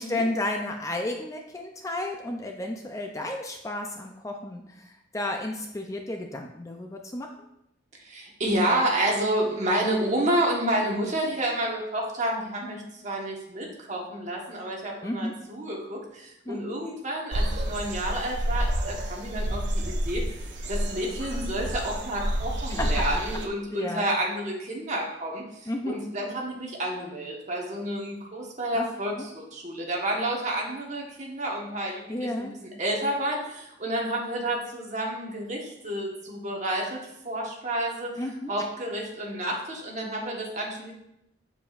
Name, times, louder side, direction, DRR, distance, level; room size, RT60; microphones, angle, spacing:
voice 1, 0.0-7.3 15.0-15.3 16.5-16.6 22.7-23.0 23.7-24.1 25.7-26.0 28.8-28.9 29.2-29.3 32.1-32.5 38.2-38.5, left 1 dB, 15° left, 3 dB, 0.5 m, -32 dB
voice 2, 8.0-20.4 20.7-38.2 38.5-40.9, right 1 dB, 40° right, -1 dB, 1.3 m, -30 dB
sound 1, 17.3-23.5, equal, 75° right, 0.9 m, -29 dB
6.9 x 6.9 x 2.5 m, 0.83 s
head